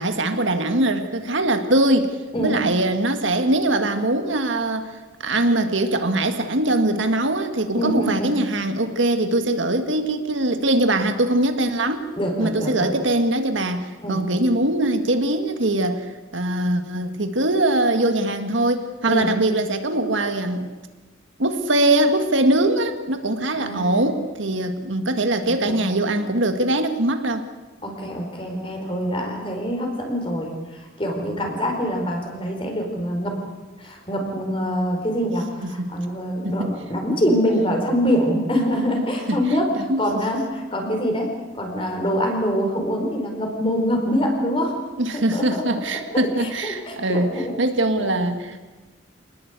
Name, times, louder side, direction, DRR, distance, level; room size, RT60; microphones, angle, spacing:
voice 1, 0.0-2.2 2.4-4.9 5.2-12.1 12.4-16.0 16.3-20.7 21.4-27.4 35.6-35.9 36.4-36.7 39.3-39.4 39.8-40.1 45.0-47.3 47.6-48.6, right 1 dB, 70° right, 7 dB, 1.8 m, -22 dB
voice 2, 7.8-8.3 12.2-12.9 14.0-14.3 19.1-19.3 23.5-24.1 25.7-25.8 27.8-33.4 33.8-44.8 45.3-45.6 46.1-47.5 48.0-48.4, equal, 25° left, 2 dB, 4.5 m, -25 dB
26.5 x 19.5 x 8.3 m, 1.2 s
head